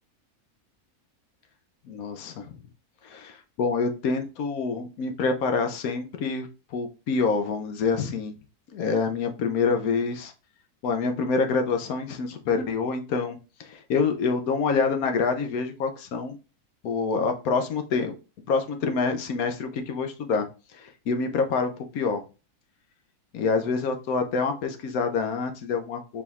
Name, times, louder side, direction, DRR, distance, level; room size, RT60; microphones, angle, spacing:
voice 1, 1.9-2.6 3.0-8.3 8.7-10.3 10.8-16.4 16.8-18.2 18.5-20.5 20.7-22.2 23.3-26.2, left 4 dB, 70° left, 6 dB, 1.1 m, -26 dB
4.9 x 3.4 x 2.3 m, 0.31 s
omnidirectional pair, 1.6 m